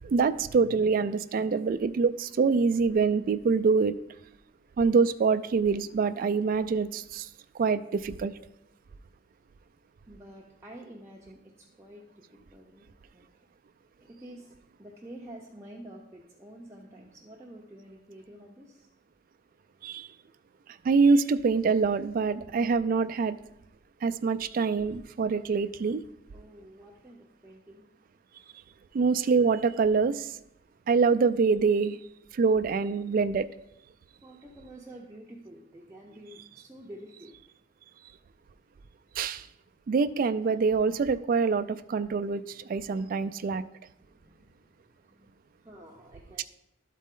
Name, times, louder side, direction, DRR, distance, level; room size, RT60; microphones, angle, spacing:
voice 1, 0.0-4.0 4.8-7.3 7.5-8.3 19.8-20.1 20.8-23.4 24.0-26.0 28.9-30.4 30.9-32.0 32.3-33.5 39.2-39.5 39.9-43.6, right 5 dB, 45° right, 10 dB, 0.3 m, -25 dB
voice 2, 10.1-12.9 13.1-13.3 14.0-18.9 26.3-27.9 34.2-37.3 38.5-38.6 39.5-39.8 42.8-43.1 43.9-46.4, right 1 dB, 15° right, -3 dB, 0.7 m, -49 dB
12.0 x 4.1 x 3.7 m, 0.83 s
head